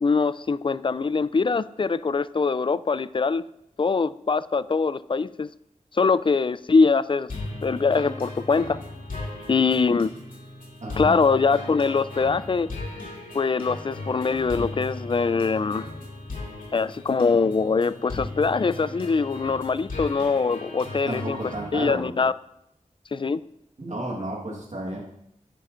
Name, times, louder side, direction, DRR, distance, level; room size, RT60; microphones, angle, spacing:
voice 1, 0.0-3.4 3.8-5.5 5.9-7.3 7.6-8.8 9.5-10.1 11.0-12.7 13.3-15.9 16.7-21.4 21.7-22.3 23.1-23.4, left 4 dB, 40° left, 16 dB, 0.4 m, -23 dB
sound 1, 7.3-21.7, left 2 dB, 80° left, 2.2 m, -37 dB
voice 2, 10.8-11.1 21.0-22.2 23.8-25.0, right 1 dB, 60° right, -3 dB, 1.6 m, -32 dB
10.5 x 9.7 x 2.6 m, 0.81 s
cardioid pair, 45°, 14 cm